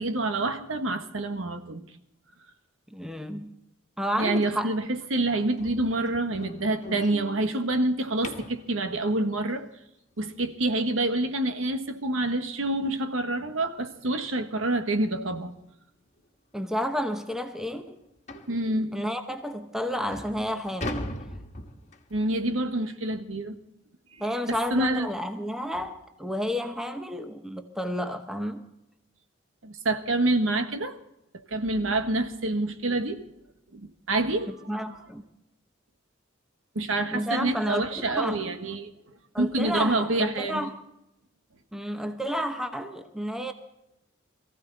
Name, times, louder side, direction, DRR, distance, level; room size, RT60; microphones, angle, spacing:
voice 1, 0.0-1.9 4.2-9.7 10.2-15.5 18.5-18.9 22.1-23.6 24.1-25.1 29.6-31.0 31.5-33.2 33.7-34.5 36.7-38.9 39.4-40.7, right 2 dB, 90° right, 1.6 m, -27 dB
voice 2, 2.9-3.6 4.0-4.7 16.5-18.0 18.9-21.1 24.2-28.6 34.5-35.2 37.1-37.8 38.2-38.5 39.3-40.7 41.7-43.5, equal, 5° right, 0.9 m, -31 dB
sound 1, 5.6-8.7 11.5-11.6 12.1-12.2 12.6-12.7 13.2-13.3 14.4-14.5 14.9-15.1 15.7-15.8 16.2-16.3 16.8-16.9 18.3-18.6 19.3-19.4 19.9-22.2, left 1 dB, 35° left, 1.6 m, -39 dB
22.5 x 15.0 x 4.1 m
head